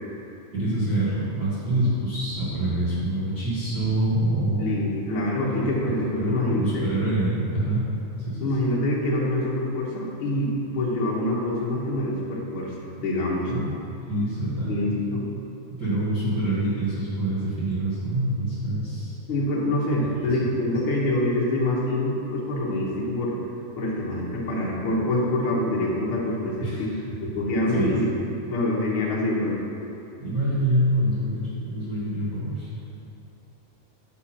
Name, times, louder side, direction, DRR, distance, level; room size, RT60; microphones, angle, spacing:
voice 1, 0.5-4.8 6.1-7.9 8.3-8.4 13.5-13.7 14.1-14.7 15.7-19.1 20.4-20.5 26.6-26.8 27.7-28.1 30.2-32.7, right 1 dB, 40° right, -13 dB, 1.5 m, -25 dB
voice 2, 4.6-6.9 8.4-13.5 14.6-15.3 19.3-23.3 23.7-28.1 28.5-29.6, left 1 dB, 70° left, -5 dB, 1.2 m, -25 dB
8.3 x 6.1 x 4.3 m, 2.8 s
omnidirectional pair, 4.2 m